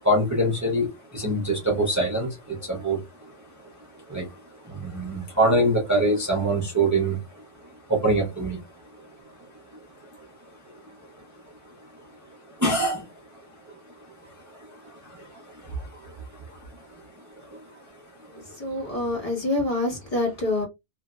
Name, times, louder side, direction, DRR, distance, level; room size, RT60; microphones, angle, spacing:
voice 1, 0.0-19.0, right 1 dB, 15° right, 0.7 m, -28 dB
voice 2, 18.3-20.7, left 2 dB, 30° left, 1.4 m, -26 dB
2.8 x 2.7 x 2.3 m
omnidirectional pair, 1.2 m